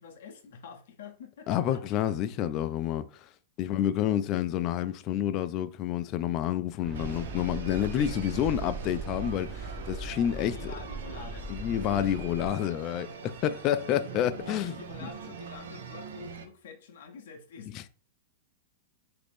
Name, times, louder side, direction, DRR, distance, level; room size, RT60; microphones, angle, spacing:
voice 1, 0.0-1.8 8.0-8.4 10.5-11.5 13.5-13.6 14.4-17.9, left 6 dB, 75° left, 0.6 m, -47 dB
voice 2, 1.5-3.0 3.6-10.7 11.5-14.8 15.0-15.1 17.7-17.9, left 11 dB, 40° left, 0.3 m, -29 dB
sound 1, 6.8-12.5, right 3 dB, 30° right, 0.7 m, -39 dB
sound 2, 6.9-16.5, right 5 dB, 85° right, 0.5 m, -43 dB
2.9 x 2.5 x 3.5 m
hypercardioid pair, 130°, 0 cm